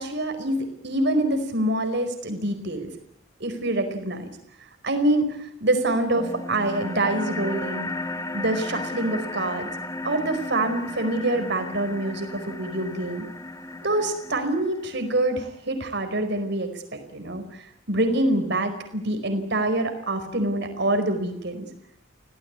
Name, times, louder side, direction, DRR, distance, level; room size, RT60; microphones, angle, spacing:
voice 1, 0.0-2.9 3.4-4.2 4.8-7.9 8.3-9.7 10.0-13.2 13.8-21.7, right 1 dB, 55° right, 7 dB, 4.8 m, -26 dB
sound 1, 6.1-15.1, left 2 dB, 15° left, 1.6 m, -34 dB
28.5 x 18.0 x 9.7 m, 0.79 s
head